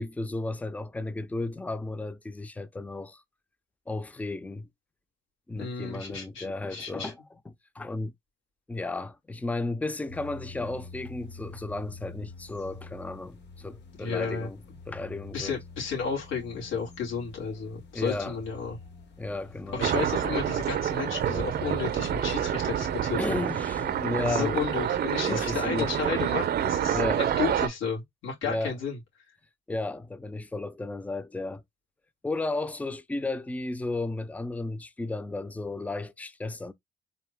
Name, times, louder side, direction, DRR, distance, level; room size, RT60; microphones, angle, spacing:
voice 1, 0.0-3.2 3.9-4.7 5.5-7.2 7.8-8.1 8.7-14.6 14.9-15.6 17.9-18.4 19.2-19.9 23.2-24.6 25.3-25.9 26.9-27.2 28.4-28.7 29.7-31.6 32.2-36.7, left 2 dB, 5° left, 0.4 m, -33 dB
voice 2, 5.6-7.1 14.0-14.5 15.3-18.8 19.7-23.4 24.2-29.0, left 6 dB, 85° left, 2.7 m, -33 dB
sound 1, 10.1-25.0, left 4 dB, 60° left, 1.4 m, -47 dB
sound 2, 19.8-27.7, right 10 dB, 55° right, 0.6 m, -28 dB
4.0 x 2.7 x 3.4 m
cardioid pair, 90°, 20 cm